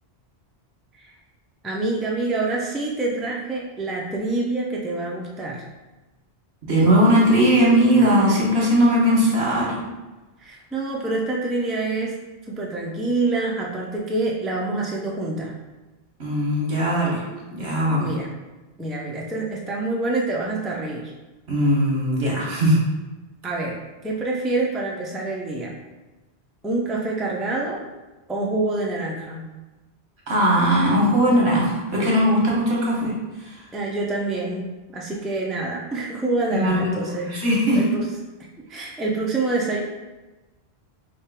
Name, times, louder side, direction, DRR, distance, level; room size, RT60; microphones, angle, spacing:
voice 1, 1.6-5.6 10.4-12.2 12.5-15.5 18.0-18.3 18.8-21.1 23.4-23.8 24.0-25.7 26.6-27.8 28.3-29.5 33.7-37.3 37.7-38.1 38.7-39.8, right 2 dB, ahead, -3 dB, 0.3 m, -26 dB
voice 2, 6.6-9.8 16.2-17.2 17.5-18.1 21.5-22.8 30.3-33.1 33.4-33.6 36.5-36.9 37.3-37.8, equal, 90° right, -4 dB, 1.4 m, -19 dB
3.2 x 2.8 x 4.5 m, 1.1 s
omnidirectional pair, 1.1 m